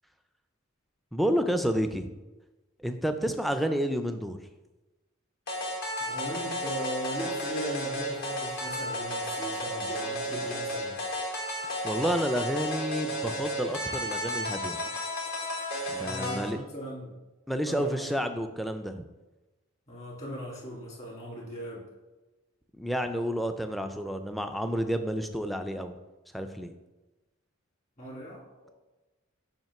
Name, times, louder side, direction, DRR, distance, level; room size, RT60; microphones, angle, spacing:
voice 1, 1.1-2.1 2.8-4.4 11.8-14.8 15.9-16.6 17.5-19.1 22.8-26.0 26.3-26.7, equal, ahead, 7 dB, 0.4 m, -30 dB
sound 1, 5.5-16.5, equal, 55° left, 1.4 m, -33 dB
voice 2, 6.0-11.0 16.0-17.2 17.6-18.1 19.9-21.9 28.0-28.8, equal, 35° left, -3 dB, 2.1 m, -38 dB
7.3 x 2.9 x 5.8 m, 1.1 s
head